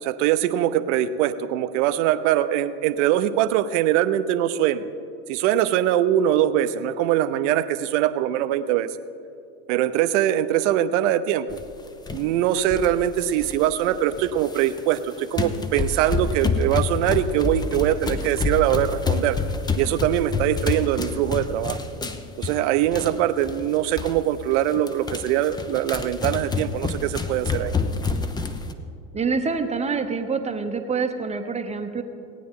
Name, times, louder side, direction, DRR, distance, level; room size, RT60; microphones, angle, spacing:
voice 1, 0.0-4.9 5.3-8.9 9.7-11.6 12.1-19.4 19.8-21.8 22.4-27.7, right 11 dB, 55° right, 12 dB, 0.7 m, -22 dB
sound 1, 11.5-11.7 12.1-12.2 12.7-13.7 14.1-15.0 15.3-23.1 23.4-23.6 24.0-24.2 24.5-28.7, left 4 dB, 10° left, 0.6 m, -28 dB
voice 2, 29.1-32.0, right 5 dB, 15° right, 6 dB, 0.8 m, -26 dB
18.0 x 9.3 x 3.7 m, 2.5 s
hypercardioid pair, 90°, 43 cm